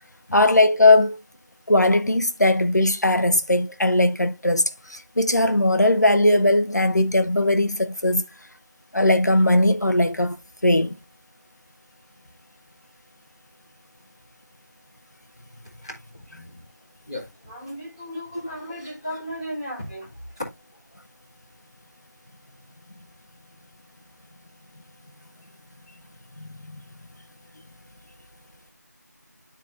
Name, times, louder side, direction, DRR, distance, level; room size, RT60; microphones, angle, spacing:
voice 1, 0.3-1.2 1.7-8.2 8.9-10.4 10.6-11.0 26.4-26.8, left 1 dB, 65° left, 1.0 m, -19 dB
voice 2, 15.8-16.6 17.1-20.1, equal, 15° left, 2.1 m, -36 dB
12.0 x 4.4 x 2.6 m
figure-of-eight pair, 175°, 10 cm